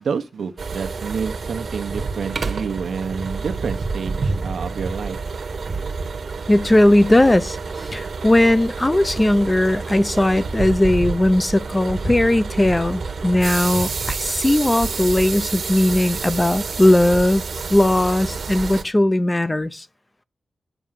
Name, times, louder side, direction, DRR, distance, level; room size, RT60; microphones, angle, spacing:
voice 1, 0.0-5.2, right 6 dB, 85° right, 1.1 m, -28 dB
sound 1, 0.6-18.8, right 4 dB, 60° right, 1.2 m, -28 dB
voice 2, 6.5-17.4 17.7-19.9, left 1 dB, 15° left, 0.6 m, -18 dB
9.2 x 6.3 x 7.5 m
wide cardioid pair, 145°, 0 cm